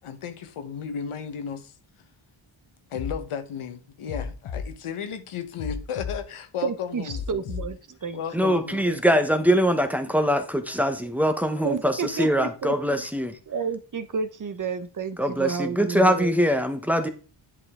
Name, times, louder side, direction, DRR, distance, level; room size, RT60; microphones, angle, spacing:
voice 1, 0.0-1.7 2.9-7.4 8.1-8.8 11.5-11.7, left 7 dB, 85° left, 1.2 m, -34 dB
sound 1, 2.9-3.2 4.1-4.7 5.6-6.2 7.1-7.7, left 6 dB, 65° left, 1.2 m, -32 dB
voice 2, 6.6-9.2 11.6-12.7 13.5-16.3, right 6 dB, 40° right, 0.8 m, -31 dB
voice 3, 8.3-13.4 15.2-17.1, equal, 5° right, 0.9 m, -23 dB
10.5 x 5.0 x 3.7 m
wide cardioid pair, 160°, 49 cm